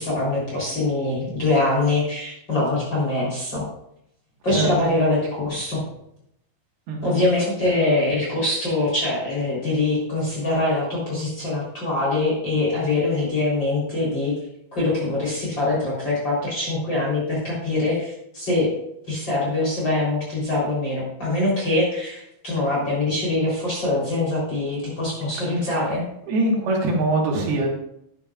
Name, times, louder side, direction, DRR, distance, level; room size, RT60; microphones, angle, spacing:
voice 1, 0.0-3.6 4.4-5.8 7.0-14.3 14.7-18.7 19.1-26.0, left 2 dB, 30° left, -6 dB, 3.9 m, -23 dB
voice 2, 26.2-27.7, right 2 dB, 75° right, -1 dB, 3.4 m, -22 dB
12.5 x 10.5 x 2.4 m, 0.75 s
omnidirectional pair, 4.6 m